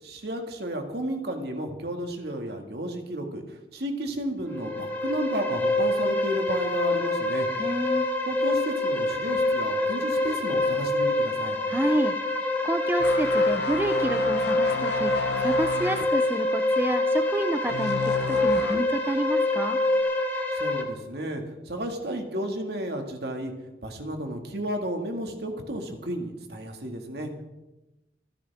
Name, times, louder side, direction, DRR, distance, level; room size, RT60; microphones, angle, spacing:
voice 1, 0.0-7.5 8.2-11.6 20.5-23.5 23.8-27.3, right 1 dB, 60° right, 3 dB, 2.1 m, -32 dB
sound 1, 4.5-20.8, left 2 dB, 10° left, 1.8 m, -26 dB
voice 2, 7.6-8.1 11.7-12.2 12.6-19.8, right 1 dB, 10° right, 7 dB, 0.5 m, -29 dB
sound 2, 13.0-19.0 19.4-19.6, left 4 dB, 65° left, 0.7 m, -33 dB
26.5 x 10.0 x 3.6 m, 1.0 s
head